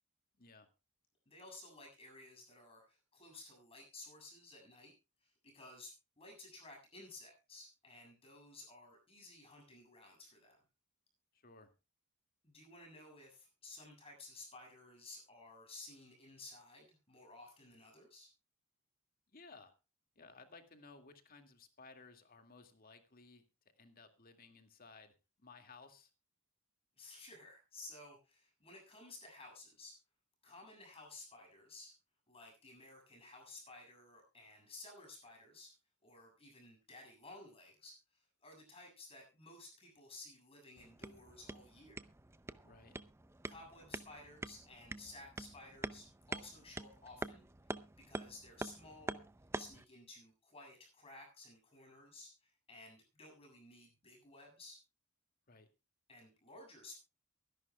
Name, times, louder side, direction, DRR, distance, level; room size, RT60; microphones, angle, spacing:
voice 1, 0.4-0.7 11.3-11.7 19.3-19.7 20.2-23.4 23.8-26.1 42.6-43.0 55.5-55.7, left 4 dB, 45° left, 6 dB, 2.2 m, -58 dB
voice 2, 1.3-4.9 5.2-10.6 12.4-18.3 27.0-30.0 30.4-31.9 32.3-35.7 36.0-42.1 43.4-47.4 48.0-49.2 49.6-54.8 56.1-57.0, left 2 dB, 25° left, 2 dB, 7.4 m, -55 dB
sound 1, 40.8-49.8, right 2 dB, 10° right, 0.5 m, -46 dB
23.5 x 11.0 x 2.3 m, 0.29 s
head